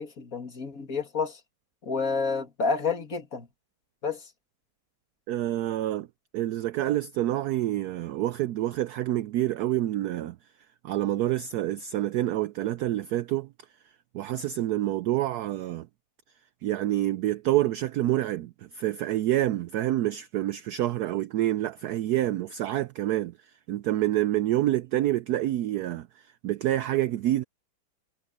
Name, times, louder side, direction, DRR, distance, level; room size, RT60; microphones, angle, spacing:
voice 1, 0.0-1.4 1.8-3.5 4.0-4.2, left 4 dB, 45° left, 2.6 m, -29 dB
voice 2, 5.3-6.1 6.3-10.4 10.8-13.5 14.1-15.9 16.6-23.3 23.7-27.4, right 14 dB, 75° right, 0.9 m, -27 dB
omnidirectional pair, 2.1 m